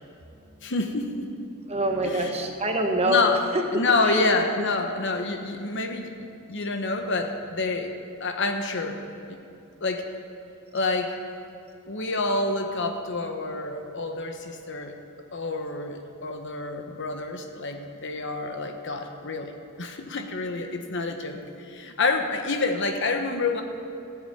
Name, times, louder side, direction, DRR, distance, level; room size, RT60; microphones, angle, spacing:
voice 1, 0.6-1.5 2.0-2.3 3.1-3.4 3.7-7.9 8.2-9.0 9.3-9.4 9.8-10.1 10.7-11.2 11.9-15.0 15.3-23.6, left 3 dB, 60° left, 5 dB, 1.1 m, -28 dB
voice 2, 1.7-4.3, right 1 dB, 30° right, 3 dB, 1.2 m, -26 dB
14.5 x 7.1 x 8.7 m, 2.6 s
head